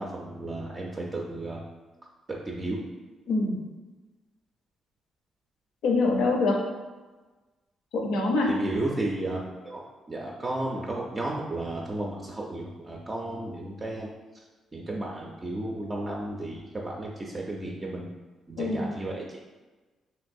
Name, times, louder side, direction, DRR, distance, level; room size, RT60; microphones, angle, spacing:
voice 1, 0.0-1.6 2.3-2.8 8.5-14.1 14.7-18.1 18.5-19.2, right 2 dB, 25° right, -2 dB, 0.4 m, -33 dB
voice 2, 3.3-3.6 5.8-6.6 7.9-8.5 18.6-18.9, left 3 dB, 85° left, 0 dB, 0.6 m, -24 dB
3.0 x 2.9 x 2.6 m, 1.3 s
cardioid pair, 90°, 0 cm